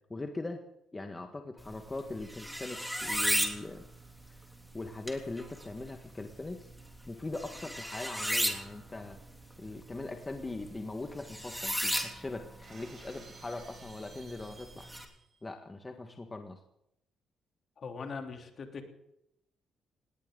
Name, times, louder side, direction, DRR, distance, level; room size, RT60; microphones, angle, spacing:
voice 1, 0.1-0.6 0.9-3.8 4.3-4.4 4.7-6.7 7.1-9.2 9.6-14.9 15.4-16.6, left 2 dB, 20° left, 4 dB, 1.7 m, -41 dB
sound 1, 1.6-15.0, equal, ahead, 3.3 m, -37 dB
Shatter, 12.6-15.4, right 3 dB, 40° right, 6.5 m, -55 dB
voice 2, 17.8-18.9, left 5 dB, 50° left, 3 dB, 3.4 m, -41 dB
19.0 x 19.0 x 4.0 m, 0.78 s
cardioid pair, 90°, 0 cm